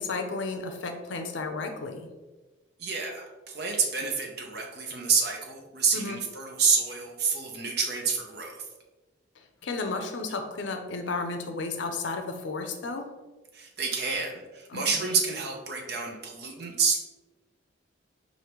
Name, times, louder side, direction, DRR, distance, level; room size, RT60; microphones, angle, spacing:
voice 1, 0.0-2.1 5.9-6.2 9.4-13.1 14.7-14.9, left 3 dB, 75° left, 5 dB, 0.6 m, -33 dB
voice 2, 2.8-8.7 13.5-17.0, right 5 dB, 55° right, 2 dB, 0.7 m, -28 dB
5.0 x 2.6 x 3.0 m, 1.2 s
head